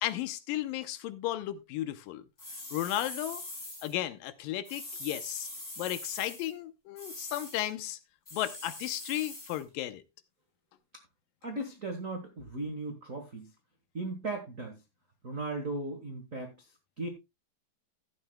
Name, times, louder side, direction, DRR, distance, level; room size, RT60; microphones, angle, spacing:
voice 1, 0.0-2.2 2.7-3.4 3.8-5.5 5.8-8.0 8.3-10.0, left 13 dB, 80° left, 2.4 m, -34 dB
sound 1, 2.4-3.9 4.6-6.5 7.0-7.7 8.3-9.6, left 1 dB, 20° left, 5.3 m, -43 dB
voice 2, 11.4-13.5 13.9-14.7 15.2-16.5 17.0-17.1, right 2 dB, 75° right, 0.7 m, -37 dB
14.0 x 11.0 x 2.2 m
omnidirectional pair, 4.1 m